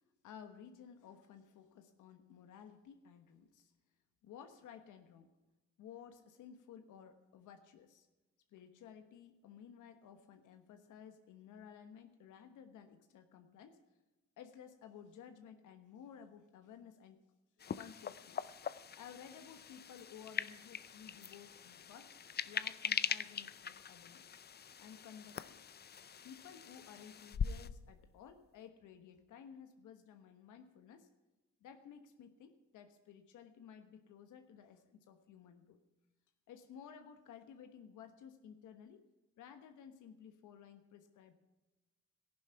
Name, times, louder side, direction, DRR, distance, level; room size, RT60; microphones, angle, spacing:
voice 1, 0.2-3.7 4.2-5.3 5.8-8.1 8.5-13.8 14.4-17.3 17.6-18.5 19.0-22.1 22.4-24.3 24.8-25.6 26.2-31.1 31.6-35.8 36.5-39.0 39.4-41.3, left 8 dB, 80° left, 8 dB, 1.3 m, -55 dB
sound 1, 17.6-27.8, left 7 dB, 35° left, 0.6 m, -42 dB
14.5 x 11.5 x 5.7 m, 1.1 s
cardioid pair, 90°, 30 cm